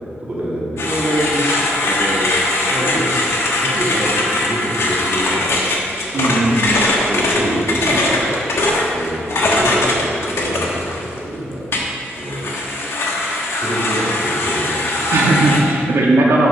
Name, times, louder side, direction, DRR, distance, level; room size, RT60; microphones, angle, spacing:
voice 1, 0.2-2.4 2.7-3.2 3.6-5.6 6.1-6.8 7.0-11.7 12.2-12.5 13.6-15.3, right 1 dB, 35° right, -6 dB, 1.9 m, -25 dB
sound 1, 0.8-11.2 11.7-15.6, left 2 dB, 75° left, 1.2 m, -20 dB
voice 2, 6.1-6.9 15.1-16.5, right 2 dB, 75° right, -2 dB, 1.4 m, -16 dB
8.5 x 6.1 x 5.4 m, 2.7 s
wide cardioid pair, 180°, 4 cm